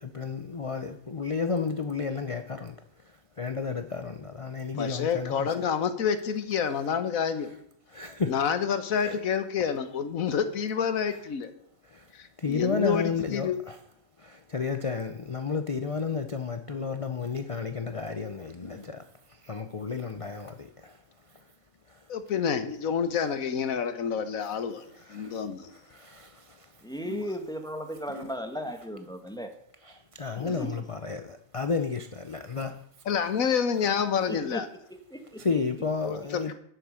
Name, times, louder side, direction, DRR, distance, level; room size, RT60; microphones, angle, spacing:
voice 1, 0.0-2.8 3.0-5.6 7.9-8.3 8.9-9.2 11.8-12.1 12.4-13.8 14.2-21.0 21.3-21.5 21.9-22.1 24.9-26.8 28.1-28.3 29.8-31.2 31.5-32.7 35.4-36.5, left 5 dB, 40° left, 0.4 m, -32 dB
voice 2, 4.8-7.5 8.3-11.5 12.1-13.0 13.3-13.6 22.1-24.8 25.1-25.7 27.1-27.2 30.4-30.6 33.1-34.7 36.0-36.5, left 7 dB, 75° left, 1.5 m, -28 dB
voice 3, 26.8-29.5 30.6-30.7 34.3-34.6 35.1-35.4, equal, 5° left, 1.1 m, -35 dB
10.5 x 7.7 x 6.4 m
omnidirectional pair, 1.5 m